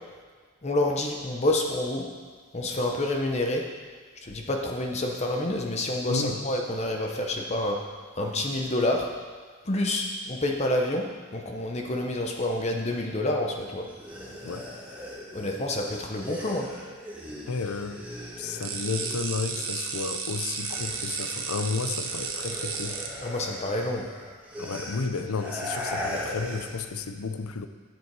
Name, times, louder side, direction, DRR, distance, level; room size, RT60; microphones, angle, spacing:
voice 1, 0.6-2.1 2.5-3.6 4.2-7.8 8.2-9.1 9.6-11.1 11.3-13.9 15.3-16.7 23.2-24.1, left 1 dB, 30° left, 1 dB, 0.8 m, -28 dB
voice 2, 6.1-6.4 14.4-14.7 17.5-18.1 18.4-23.0 24.6-27.7, left 4 dB, 85° left, 9 dB, 0.6 m, -32 dB
sound 1, 13.8-20.1 20.3-26.9, left 1 dB, 5° right, 1.5 m, -39 dB
sound 2, 18.6-23.1, right 5 dB, 70° right, 1.0 m, -33 dB
10.0 x 7.5 x 4.7 m, 1.5 s
head